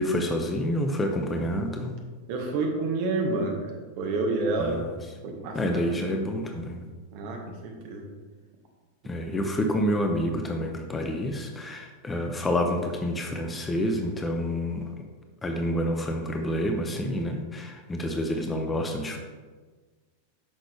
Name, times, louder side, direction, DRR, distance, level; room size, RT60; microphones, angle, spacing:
voice 1, 0.0-2.0 4.6-4.9 5.5-6.9 9.0-14.9 15.4-19.2, equal, 15° left, 3 dB, 0.8 m, -28 dB
voice 2, 2.3-4.8 5.2-5.6 6.1-6.2 7.1-8.0, right 3 dB, 45° right, 2 dB, 1.5 m, -29 dB
9.0 x 6.3 x 3.3 m, 1.4 s
figure-of-eight pair, 90°, 0 cm